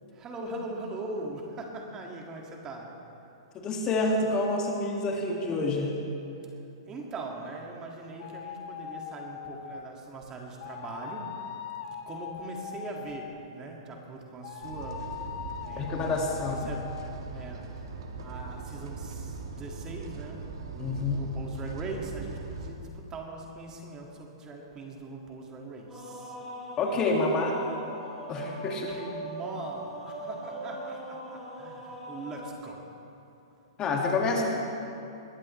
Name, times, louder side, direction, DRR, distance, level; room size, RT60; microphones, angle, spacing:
voice 1, 0.1-3.0 6.9-11.3 12.1-15.1 15.6-17.0 17.3-17.7 18.2-26.4 28.7-32.9, right 2 dB, 25° right, 0 dB, 2.1 m, -41 dB
voice 2, 3.5-6.0 15.8-16.7 20.8-21.2 26.8-27.6 28.3-29.0 33.8-34.4, left 3 dB, 25° left, 0 dB, 2.1 m, -28 dB
sound 1, 8.2-9.9 10.6-13.5 14.4-17.1, left 8 dB, 45° left, 1.0 m, -41 dB
sound 2, 14.6-22.7, right 3 dB, 75° right, 1.9 m, -40 dB
sound 3, 25.9-32.5, equal, 5° right, 4.2 m, -40 dB
21.0 x 15.5 x 3.3 m, 2.8 s
hypercardioid pair, 125°, 3 cm